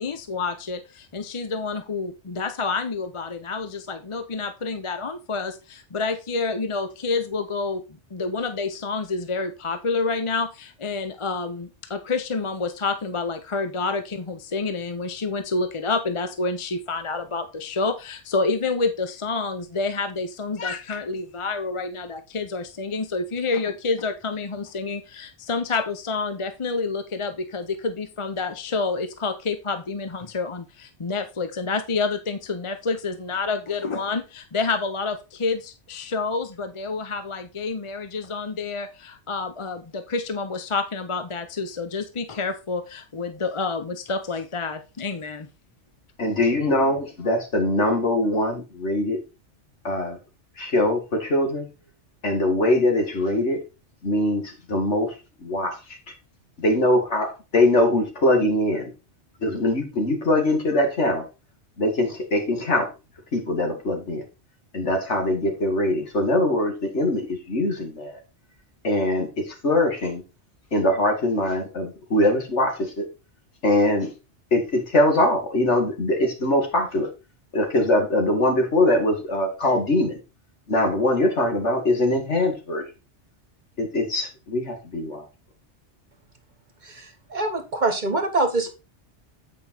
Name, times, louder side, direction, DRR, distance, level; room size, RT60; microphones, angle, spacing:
voice 1, 0.0-7.8 8.1-45.4, left 4 dB, 35° left, 9 dB, 0.6 m, -28 dB
voice 2, 46.2-49.2 49.8-50.2 50.6-51.7 52.2-53.6 54.0-55.1 55.4-56.1 56.6-57.3 57.5-58.9 59.4-61.3 61.8-62.9 63.3-64.2 64.7-68.2 68.8-70.2 70.7-73.0 73.6-74.1 74.5-77.1 77.5-80.2 80.7-82.8 83.8-85.3, left 1 dB, 75° left, 4 dB, 2.4 m, -22 dB
voice 3, 86.8-88.7, right 2 dB, 40° right, 7 dB, 1.3 m, -25 dB
8.6 x 5.3 x 4.3 m, 0.29 s
omnidirectional pair, 1.2 m